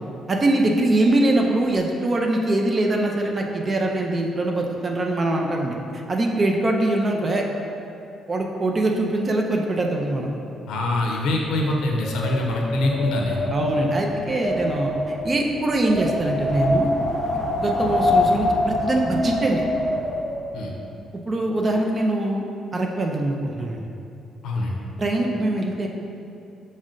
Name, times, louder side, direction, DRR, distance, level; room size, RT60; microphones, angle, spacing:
voice 1, 0.3-5.8 6.1-7.4 8.3-10.3 13.5-16.9 17.6-19.6 21.3-22.4 22.7-23.8 25.0-25.9, right 2 dB, 35° right, 1 dB, 0.4 m, -23 dB
voice 2, 10.7-13.4 20.5-20.7 24.4-24.8, left 2 dB, 80° left, 0 dB, 0.5 m, -24 dB
Wind, 11.3-20.5, left 1 dB, 30° left, 0.7 m, -25 dB
6.1 x 2.1 x 3.7 m, 2.6 s
cardioid pair, 90°, 0 cm